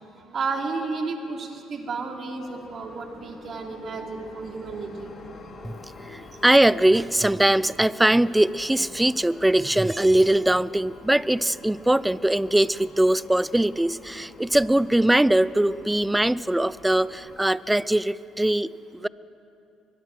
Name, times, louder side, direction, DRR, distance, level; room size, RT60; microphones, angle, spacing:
voice 1, 0.3-5.1, right 4 dB, 50° right, 2 dB, 3.3 m, -32 dB
sound 1, 2.4-17.4, left 3 dB, 40° left, 3.4 m, -47 dB
voice 2, 5.6-19.1, right 1 dB, 10° right, 20 dB, 0.5 m, -21 dB
22.5 x 22.0 x 6.3 m, 2.8 s
hypercardioid pair, 55°, 0 cm